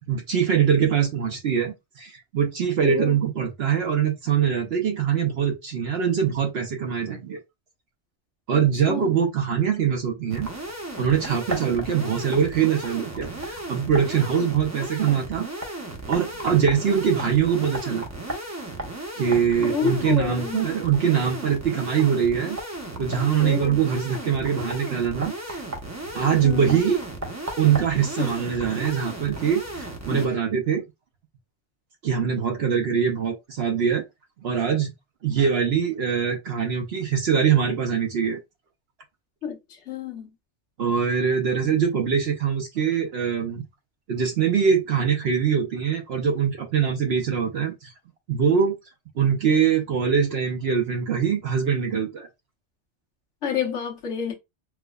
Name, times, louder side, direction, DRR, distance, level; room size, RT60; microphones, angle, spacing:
voice 1, 0.1-7.4 8.5-10.5 11.0-15.5 16.1-18.1 19.1-22.6 23.0-25.6 26.1-27.0 27.6-30.8 32.0-34.0 34.4-34.9 35.2-38.4 40.8-43.6 44.1-47.9 48.3-48.7 49.2-52.3, right 7 dB, 65° right, 0.8 m, -23 dB
voice 2, 2.8-3.2 8.5-8.6 8.9-9.1 19.6-20.7 23.4-23.8 26.4-26.8 28.2-28.3 30.1-30.3 39.4-39.6 39.9-40.3 41.6-41.7 53.4-54.3, left 7 dB, 85° left, 1.2 m, -29 dB
sound 1, 10.3-30.3, right 1 dB, 20° right, 0.6 m, -35 dB
4.5 x 2.1 x 2.3 m
omnidirectional pair, 1.2 m